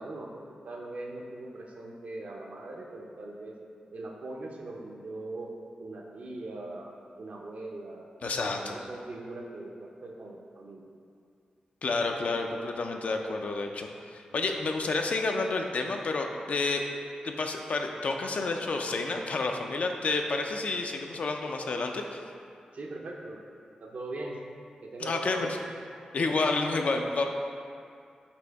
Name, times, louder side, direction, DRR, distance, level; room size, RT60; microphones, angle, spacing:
voice 1, 0.0-3.5 3.9-5.5 5.8-6.9 7.2-8.1 8.5-10.9 22.7-23.4 23.8-24.4 24.8-25.5, right 2 dB, 65° right, -1 dB, 0.6 m, -40 dB
voice 2, 8.2-8.8 11.8-16.8 17.2-22.2 25.0-25.6 26.1-27.3, left 3 dB, 65° left, 3 dB, 0.4 m, -30 dB
4.3 x 2.7 x 4.5 m, 2.4 s
cardioid pair, 60°, 3 cm